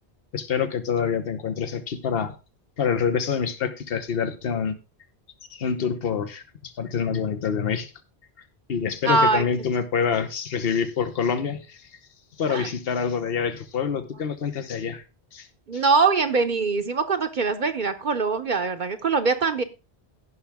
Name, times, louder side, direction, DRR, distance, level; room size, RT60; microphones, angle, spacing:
voice 1, 0.3-2.3 2.8-4.7 5.5-7.9 8.7-11.9 12.4-15.0 15.3-15.5 15.7-15.8, left 6 dB, 65° left, 10 dB, 1.2 m, -26 dB
voice 2, 9.0-9.4 12.5-12.7 15.7-19.6, right 4 dB, 55° right, 8 dB, 0.9 m, -22 dB
15.5 x 5.9 x 3.5 m, 0.30 s
omnidirectional pair, 1.1 m